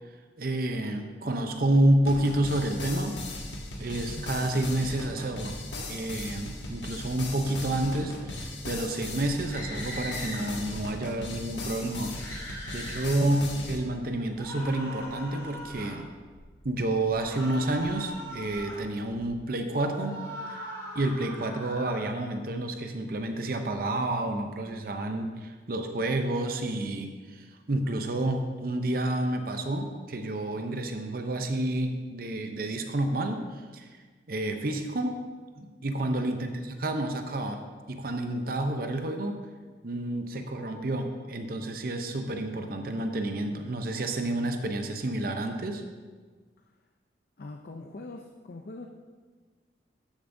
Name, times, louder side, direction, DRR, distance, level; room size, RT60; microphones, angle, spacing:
voice 1, 0.4-3.2 3.8-5.6 5.9-12.2 12.7-16.1 16.6-20.6 20.9-33.9 34.3-35.2 35.6-37.6 37.9-39.4 39.8-45.8, right 1 dB, 50° right, 6 dB, 0.6 m, -29 dB
sound 1, 2.1-13.8, left 2 dB, 85° left, 1.2 m, -38 dB
sound 2, 9.4-10.4 12.1-13.1 14.4-16.0 17.1-18.8 20.0-22.1, equal, 20° left, 2.5 m, -40 dB
sound 3, 15.8-19.4, equal, 15° right, 2.4 m, -54 dB
voice 2, 47.4-48.9, left 2 dB, 55° left, 4 dB, 0.5 m, -43 dB
12.5 x 6.9 x 2.6 m, 1.5 s
head